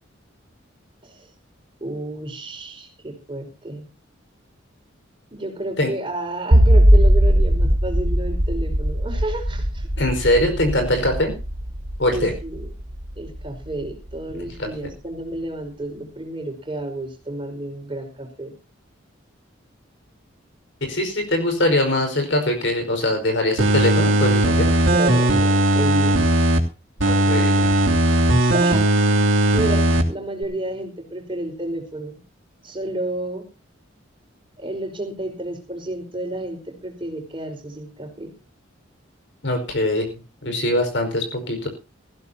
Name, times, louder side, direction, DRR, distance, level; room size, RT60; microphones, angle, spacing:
voice 1, 1.8-3.8 5.3-9.9 12.0-12.7 13.2-18.5 24.9-26.2 28.4-28.9 29.5-32.2 32.6-33.4 34.6-38.3, right 1 dB, 25° right, 2 dB, 4.8 m, -31 dB
sound 1, 6.5-13.7, equal, 55° right, 1.7 m, -19 dB
voice 2, 10.0-11.3 12.0-12.3 14.4-14.7 20.9-24.7 27.0-27.7 39.4-40.1 40.4-41.7, left 1 dB, 60° left, 5 dB, 5.1 m, -22 dB
sound 2, 23.6-26.6 27.0-30.0 30.4-30.5, right 1 dB, 80° right, 3.0 m, -18 dB
19.0 x 15.5 x 2.9 m, 0.31 s
head